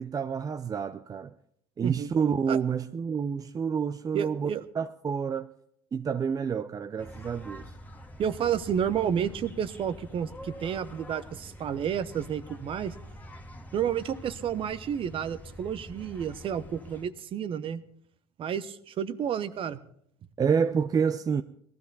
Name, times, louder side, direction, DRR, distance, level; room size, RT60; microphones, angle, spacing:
voice 1, 0.0-1.3 1.8-5.5 5.9-7.7 20.4-21.4, right 6 dB, 30° right, 0.6 m, -28 dB
voice 2, 4.1-4.6 8.2-12.9 13.7-17.8 18.4-19.8, right 8 dB, 50° right, 1.0 m, -31 dB
sound 1, 7.0-17.1, equal, 15° left, 1.8 m, -46 dB
18.5 x 13.0 x 4.0 m
hypercardioid pair, 75°, 12 cm